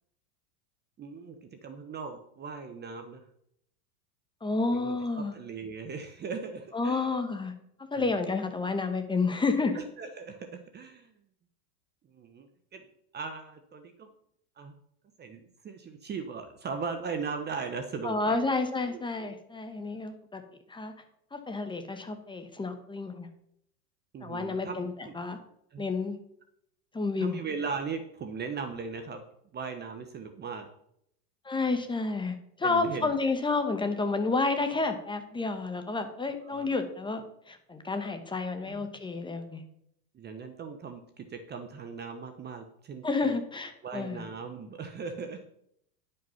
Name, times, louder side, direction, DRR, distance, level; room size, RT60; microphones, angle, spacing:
voice 1, 1.0-3.2 4.7-5.0 5.3-7.2 7.9-8.1 9.7-11.1 12.1-12.8 13.1-14.1 14.6-14.7 15.2-18.5 18.9-19.3 24.1-25.2 25.7-25.9 27.2-29.2 29.5-30.7 32.6-33.2 36.4-36.7 38.7-38.9 40.1-43.3 43.8-45.5, right 5 dB, 20° right, 6 dB, 0.9 m, -38 dB
voice 2, 4.4-5.4 6.7-7.5 7.9-9.8 18.0-20.4 20.7-20.9 21.3-23.3 24.2-25.4 25.8-26.2 26.9-27.4 31.4-39.6 43.0-44.2, left 3 dB, 10° left, 7 dB, 1.1 m, -30 dB
11.0 x 5.4 x 5.6 m, 0.73 s
supercardioid pair, 120°, 47 cm